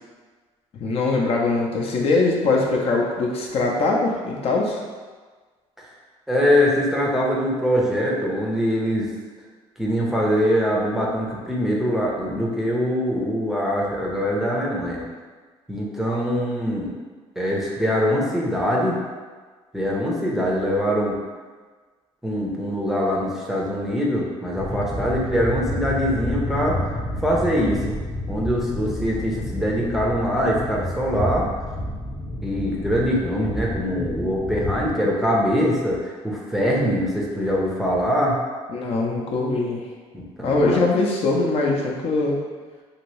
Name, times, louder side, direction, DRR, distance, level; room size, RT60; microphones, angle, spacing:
voice 1, 0.7-4.8 38.7-39.9 40.4-42.4, left 3 dB, 55° left, -1 dB, 0.6 m, -22 dB
voice 2, 6.3-9.1 9.8-15.1 15.7-16.9 17.4-19.0 19.7-21.2 22.2-26.8 27.2-28.0 28.3-31.5 32.4-38.4 40.1-40.8, equal, 5° right, -4 dB, 0.6 m, -23 dB
sound 1, 24.5-34.9, left 1 dB, 35° left, 0.9 m, -30 dB
2.8 x 2.6 x 3.1 m, 1.4 s
cardioid pair, 110°, 12 cm